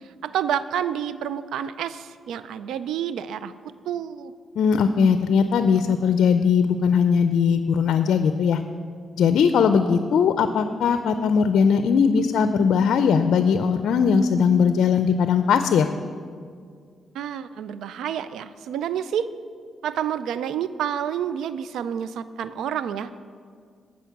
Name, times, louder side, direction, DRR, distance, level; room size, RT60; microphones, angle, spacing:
voice 1, 0.2-3.5 3.9-4.3 17.1-19.3 19.8-23.1, right 9 dB, 85° right, 14 dB, 0.4 m, -29 dB
voice 2, 4.6-8.6 9.2-15.9, left 6 dB, 80° left, 9 dB, 0.5 m, -19 dB
17.5 x 6.3 x 5.9 m, 2.1 s
cardioid pair, 80°, 0 cm